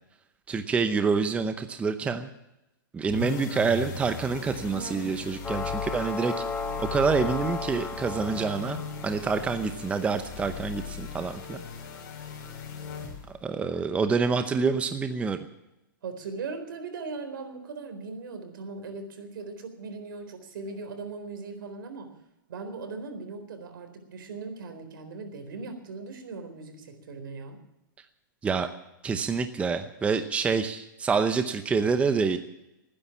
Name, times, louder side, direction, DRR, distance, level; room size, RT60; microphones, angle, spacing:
voice 1, 0.5-2.3 2.9-6.3 6.8-11.6 13.4-15.4 28.4-28.7 29.0-32.4, right 5 dB, 10° right, 8 dB, 0.8 m, -27 dB
sound 1, 3.1-13.5, left 6 dB, 50° left, 4.6 m, -38 dB
sound 2, 5.4-9.5, left 4 dB, 10° left, 1.3 m, -35 dB
voice 2, 16.0-22.1 22.5-27.6, right 4 dB, 75° right, 7 dB, 4.1 m, -39 dB
19.5 x 10.0 x 7.2 m, 0.91 s
hypercardioid pair, 145°, 11 cm